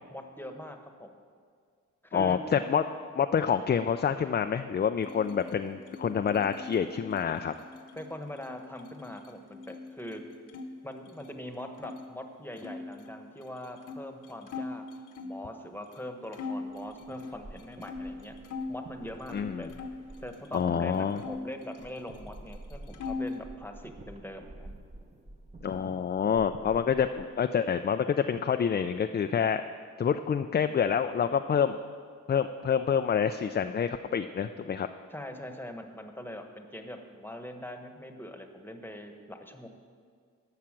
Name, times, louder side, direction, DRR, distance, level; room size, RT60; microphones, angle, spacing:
voice 1, 0.1-1.1 2.0-2.4 8.0-10.2 10.8-14.8 15.2-18.4 18.7-19.7 20.2-24.8 35.1-39.7, left 1 dB, 5° left, 5 dB, 1.1 m, -42 dB
voice 2, 2.1-2.8 3.2-7.5 19.3-19.7 20.5-21.2 25.6-29.6 30.0-31.8 32.3-34.9, left 7 dB, 30° left, 8 dB, 0.4 m, -27 dB
sound 1, 5.0-10.7 11.0-12.0 12.6-15.4 15.9-16.0 16.3-18.8 19.1-20.8 21.2-22.3 22.5-23.4, left 3 dB, 70° left, 1.1 m, -41 dB
sound 2, 16.7-27.5, right 2 dB, 20° right, 0.9 m, -49 dB
12.5 x 5.8 x 7.4 m, 2.1 s
cardioid pair, 75°, 31 cm